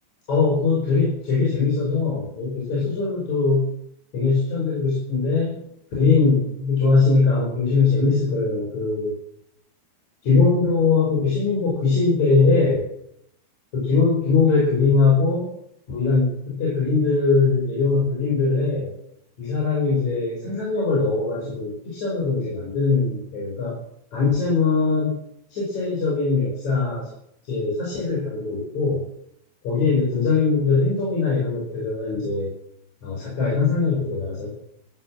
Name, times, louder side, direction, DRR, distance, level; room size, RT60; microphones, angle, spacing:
voice 1, 0.3-3.7 4.1-5.6 6.0-9.2 10.2-12.8 13.7-15.5 15.9-18.9 19.4-23.7 24.1-25.2 25.5-27.1 27.5-29.0 29.6-32.5 33.0-34.5, left 4 dB, 45° left, -5 dB, 6.3 m, -21 dB
14.5 x 12.5 x 7.6 m, 0.74 s
omnidirectional pair, 4.7 m